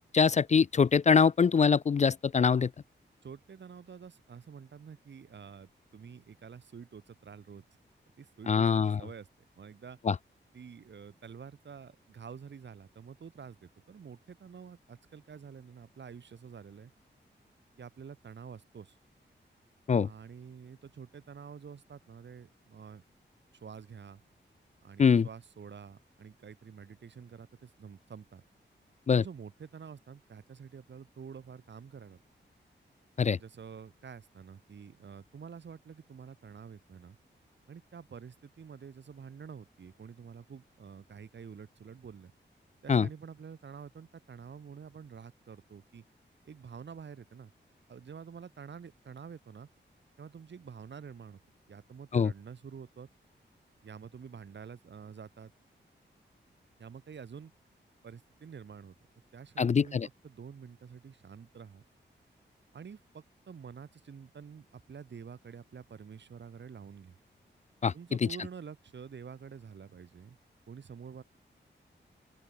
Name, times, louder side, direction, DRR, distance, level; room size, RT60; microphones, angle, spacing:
voice 1, 0.0-2.7 8.5-9.0 10.1-10.2 19.9-20.1 25.0-25.3 29.1-29.2 33.2-33.4 42.9-43.1 52.1-52.3 59.6-60.1 67.8-67.9, left 6 dB, 40° left, 0.4 m, -24 dB
voice 2, 3.2-7.6 8.2-9.3 9.6-10.0 10.5-16.9 17.8-19.0 20.0-23.0 23.5-24.2 24.8-28.4 29.1-32.2 33.4-37.2 37.7-42.3 42.8-46.0 46.4-47.5 47.9-49.7 50.2-51.4 51.7-53.1 53.8-55.5 56.8-57.5 58.0-58.9 59.3-60.0 60.2-61.8 62.7-67.2 67.9-70.4 70.7-71.2, right 6 dB, 70° right, 7.5 m, -48 dB
open air
wide cardioid pair, 140°, 19 cm